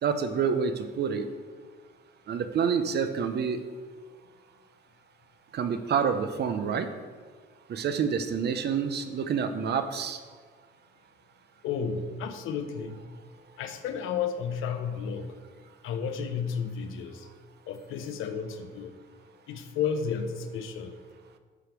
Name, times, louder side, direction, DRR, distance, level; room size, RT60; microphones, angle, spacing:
voice 1, 0.0-1.3 2.3-3.6 5.5-6.9 7.7-10.2, right 6 dB, 55° right, 9 dB, 0.7 m, -28 dB
voice 2, 11.6-13.0 13.6-15.3 15.8-17.3 17.7-18.9 19.5-20.9, left 6 dB, 85° left, 7 dB, 0.8 m, -32 dB
9.7 x 3.4 x 6.0 m, 1.5 s
cardioid pair, 90°, 20 cm